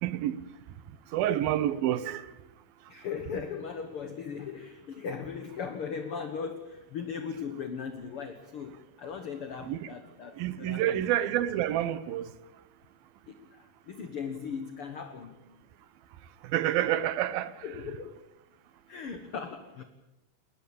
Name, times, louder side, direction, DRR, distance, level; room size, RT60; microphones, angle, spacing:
voice 1, 0.0-0.4 1.1-2.3 9.6-9.8 10.4-12.3 16.4-17.7, right 12 dB, 85° right, 2.8 m, -28 dB
voice 2, 2.9-11.1 13.3-15.4 17.6-18.2 18.9-19.8, left 6 dB, 50° left, 1.9 m, -38 dB
21.5 x 20.0 x 8.7 m
omnidirectional pair, 4.1 m